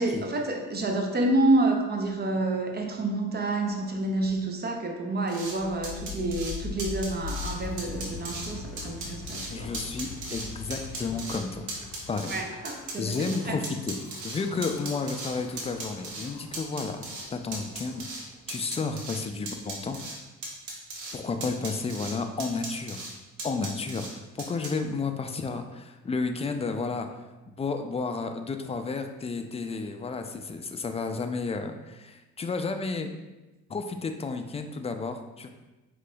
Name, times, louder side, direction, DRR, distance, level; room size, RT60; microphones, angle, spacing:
voice 1, 0.0-9.7 12.3-13.6, right 2 dB, 35° right, 3 dB, 0.7 m, -28 dB
sound 1, 5.3-5.5 5.8-6.5 6.8-7.5 7.8-8.5 8.8-9.5 9.7-10.5 10.7-11.4 11.7-13.4 13.6-15.3 15.6-16.3 16.5-17.3 17.5-18.2 18.5-19.2 19.5-20.1 20.4-21.2 21.4-22.1 22.4-23.1 23.4-24.1 24.4-24.7, right 3 dB, 75° right, 1.1 m, -37 dB
Wind, 5.5-18.5, left 5 dB, 85° left, 0.5 m, -42 dB
voice 2, 9.5-11.7 12.1-12.4 13.0-13.9 14.2-17.0 17.3-18.1 18.5-20.2 21.1-23.1 23.4-27.1 27.6-33.1 33.7-35.5, left 4 dB, 20° left, 6 dB, 0.4 m, -32 dB
4.9 x 3.8 x 2.3 m, 1.1 s
cardioid pair, 90°, 30 cm